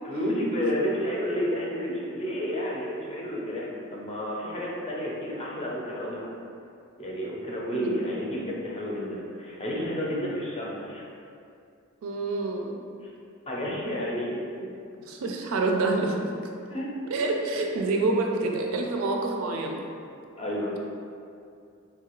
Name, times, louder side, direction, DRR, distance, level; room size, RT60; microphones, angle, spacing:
voice 1, 0.0-6.3 7.0-11.0 13.5-14.8 16.7-16.9 20.3-20.7, equal, 30° left, -4 dB, 0.5 m, -31 dB
voice 2, 12.0-12.8 15.1-16.2 17.1-19.8, right 3 dB, 70° right, 1 dB, 0.4 m, -27 dB
3.1 x 2.3 x 2.9 m, 2.5 s
head